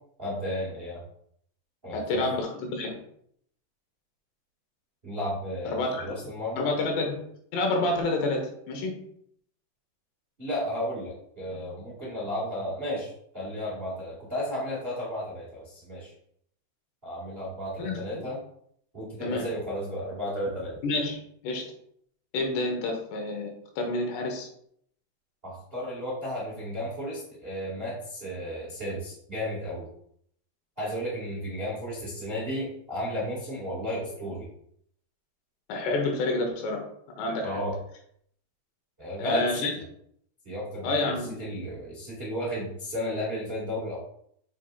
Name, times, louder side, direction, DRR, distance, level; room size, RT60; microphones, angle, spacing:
voice 1, 0.2-1.0 1.8-2.2 5.0-6.7 10.4-16.1 17.0-18.4 18.9-20.7 25.4-29.9 30.8-34.5 37.4-37.8 39.0-39.8 40.4-41.1 41.4-44.0, equal, 60° right, -6 dB, 0.6 m, -33 dB
voice 2, 1.9-3.0 5.7-6.1 6.6-7.2 7.5-8.9 17.8-18.3 19.2-19.5 20.8-21.7 22.3-24.5 35.7-36.8 37.2-37.6 39.2-39.7 40.8-41.4, left 2 dB, 85° left, 3 dB, 3.3 m, -29 dB
7.0 x 5.8 x 2.4 m, 0.68 s
omnidirectional pair, 4.7 m